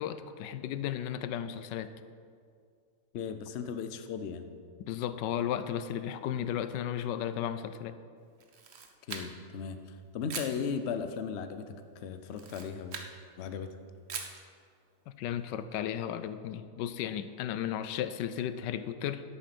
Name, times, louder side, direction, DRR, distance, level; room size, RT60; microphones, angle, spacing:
voice 1, 0.0-1.9 4.8-8.0 15.1-19.2, left 10 dB, 85° left, 12 dB, 1.2 m, -34 dB
voice 2, 3.1-4.5 9.1-9.8 10.1-11.7 12.0-13.0 13.4-13.8, left 6 dB, 60° left, 9 dB, 0.7 m, -36 dB
Camera, 8.4-9.6 10.3-10.6 12.3-13.1 14.1-14.4, right 5 dB, 45° right, 0.9 m, -41 dB
11.0 x 8.2 x 5.9 m, 2.2 s
omnidirectional pair, 1.9 m